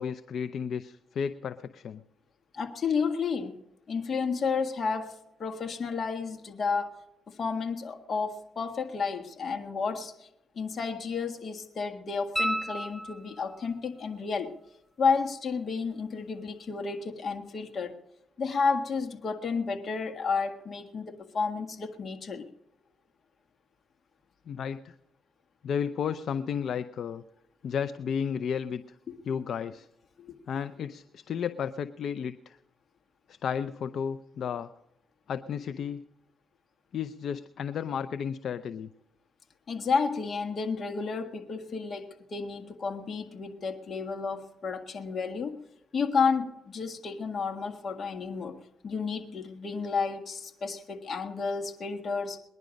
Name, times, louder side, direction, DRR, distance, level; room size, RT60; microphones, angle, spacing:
voice 1, 0.0-2.0 24.5-24.9 25.6-27.2 27.6-28.8 29.3-29.9 30.5-32.6 33.3-34.7 35.3-36.0 36.9-38.9, left 7 dB, 60° left, 12 dB, 0.5 m, -33 dB
voice 2, 2.5-3.6 3.9-6.9 7.3-10.3 10.5-14.5 15.0-18.0 18.4-22.4 30.2-30.4 39.7-45.6 45.9-48.6 48.8-52.4, left 5 dB, 45° left, 6 dB, 1.7 m, -31 dB
sound 1, 12.4-13.7 16.5-16.6, right 1 dB, 5° left, 0.5 m, -32 dB
20.5 x 11.0 x 5.2 m, 0.84 s
cardioid pair, 90°, 0 cm